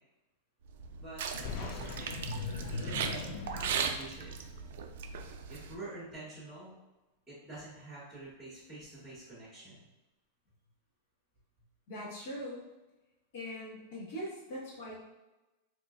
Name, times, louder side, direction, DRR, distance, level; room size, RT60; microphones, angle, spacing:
sound 1, 0.7-5.7, right 6 dB, 65° right, 0.3 m, -38 dB
voice 1, 1.0-2.2 2.8-4.6 5.5-6.7 7.3-9.9, right 2 dB, ahead, -10 dB, 1.3 m, -47 dB
sound 2, 1.3-4.8, left 3 dB, 75° left, 0.6 m, -41 dB
sound 3, 1.4-4.4, left 6 dB, 35° left, 0.4 m, -45 dB
voice 2, 11.9-12.6 13.3-14.9, equal, 55° left, -6 dB, 1.3 m, -41 dB
4.2 x 3.0 x 2.4 m, 1.0 s
supercardioid pair, 170°, 0 cm